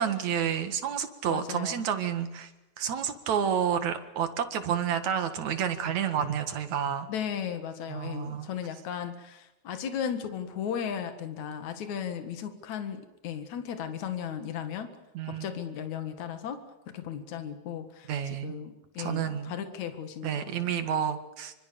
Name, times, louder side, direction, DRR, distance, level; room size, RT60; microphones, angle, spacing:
voice 1, 0.0-2.5 2.8-7.1 7.9-8.5 15.1-15.4 18.1-18.5 19.0-19.5 20.2-21.6, right 8 dB, 70° right, 8 dB, 3.1 m, -30 dB
voice 2, 1.3-1.9 7.1-14.9 15.3-16.6 16.9-20.8, left 8 dB, 70° left, 8 dB, 3.1 m, -36 dB
26.0 x 25.0 x 7.0 m, 0.93 s
omnidirectional pair, 3.4 m